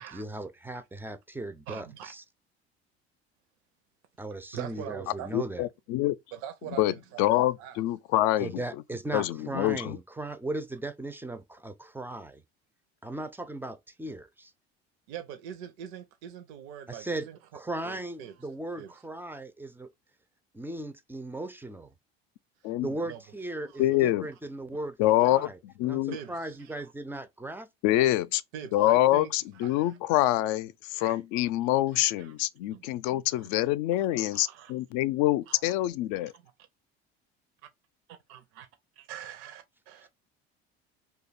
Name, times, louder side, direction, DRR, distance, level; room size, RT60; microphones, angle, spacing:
voice 1, 0.0-2.2 4.2-5.7 8.4-12.4 13.0-14.5 16.9-17.3 17.5-19.9 20.5-21.9 22.8-25.6 25.8-26.0 26.3-28.1, right 2 dB, 5° right, 0.4 m, -37 dB
voice 2, 1.7-2.1 4.5-5.3 6.3-7.8 15.1-17.4 17.8-18.4 18.8-19.0 22.6-22.7 23.0-23.2 23.7-23.8 25.2-25.4 26.1-26.9 28.5-30.0 31.0-31.2 31.9-32.4 32.7-33.2 33.5-33.6 34.0-34.7 35.5-35.6 36.2-36.5 38.1-38.7 39.0-40.1, right 10 dB, 70° right, 0.6 m, -44 dB
voice 3, 5.3-6.2 6.8-8.5 9.1-10.0 22.6-22.9 23.8-24.3 25.0-25.5 25.8-26.2 27.8-28.4 28.7-36.3, left 15 dB, 60° left, 0.5 m, -26 dB
2.7 x 2.3 x 4.0 m
hypercardioid pair, 75°, 32 cm